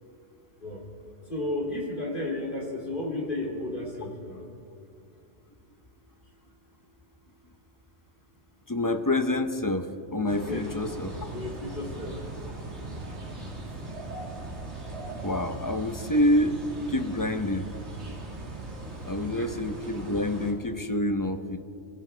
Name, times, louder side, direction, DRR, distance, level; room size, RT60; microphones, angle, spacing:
voice 1, 1.3-4.4 10.4-10.6 11.3-12.1 19.2-19.5, left 2 dB, 45° left, -2 dB, 3.1 m, -33 dB
voice 2, 8.7-11.3 15.2-16.6 16.9-17.7 19.0-21.6, left 1 dB, 20° left, 7 dB, 0.6 m, -27 dB
sound 1, 10.3-20.5, right 2 dB, 65° right, 2.6 m, -39 dB
26.5 x 16.0 x 3.4 m, 2.5 s
omnidirectional pair, 1.2 m